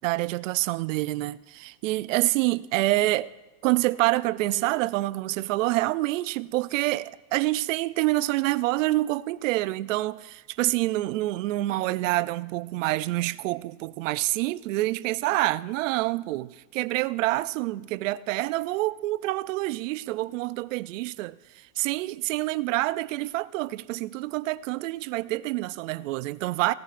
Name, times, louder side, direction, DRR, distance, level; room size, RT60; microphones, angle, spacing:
voice 1, 0.0-3.3 3.6-26.7, right 18 dB, 60° right, 0.5 m, -27 dB
18.0 x 12.5 x 2.5 m
supercardioid pair, 155°, 44 cm